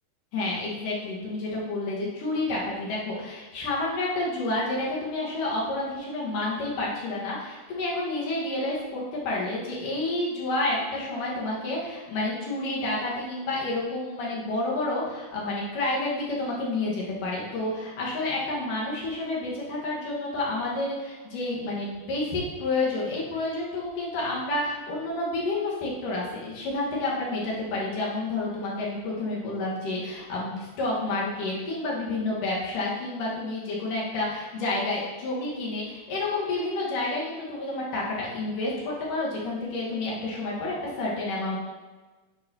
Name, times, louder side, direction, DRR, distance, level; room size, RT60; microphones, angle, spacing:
voice 1, 0.3-41.6, left 2 dB, 60° left, -5 dB, 3.0 m, -29 dB
9.9 x 6.6 x 2.9 m, 1.3 s
omnidirectional pair, 4.7 m